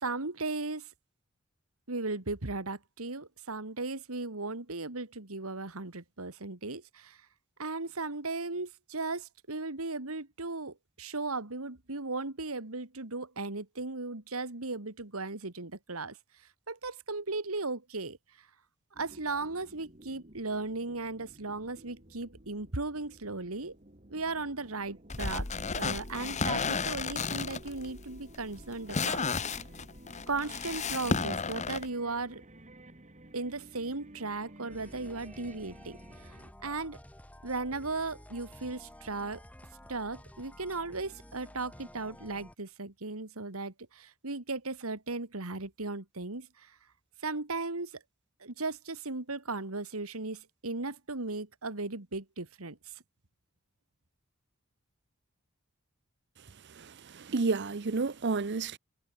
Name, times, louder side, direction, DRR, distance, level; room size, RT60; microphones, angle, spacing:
voice 1, 0.0-0.9 1.9-7.2 7.6-18.5 19.0-23.7 24.1-25.5 25.8-29.6 30.3-32.4 33.3-36.3 36.6-37.0 37.4-39.4 39.9-46.8 47.2-48.0 48.4-53.0, right 3 dB, 90° right, 2.5 m, -37 dB
sound 1, 18.9-36.5, right 1 dB, 35° right, 2.5 m, -54 dB
sound 2, 25.1-31.9, left 4 dB, 35° left, 1.1 m, -33 dB
sound 3, 34.7-42.5, left 1 dB, 5° left, 2.5 m, -52 dB
voice 2, 56.7-58.8, right 4 dB, 55° right, 0.7 m, -31 dB
head